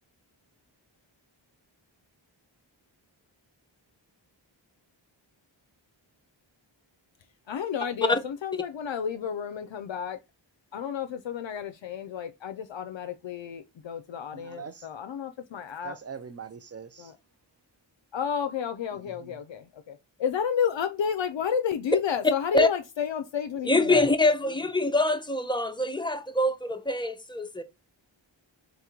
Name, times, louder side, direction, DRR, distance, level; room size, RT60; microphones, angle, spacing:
voice 1, 7.5-10.2 10.7-16.0 17.0-17.2 18.1-24.1, left 7 dB, 70° left, 0.5 m, -31 dB
voice 2, 14.3-14.9 15.8-17.1 19.0-19.4, right 6 dB, 35° right, 0.5 m, -42 dB
voice 3, 23.7-27.6, left 2 dB, 10° left, 0.6 m, -24 dB
3.9 x 2.9 x 3.6 m
wide cardioid pair, 45°, 47 cm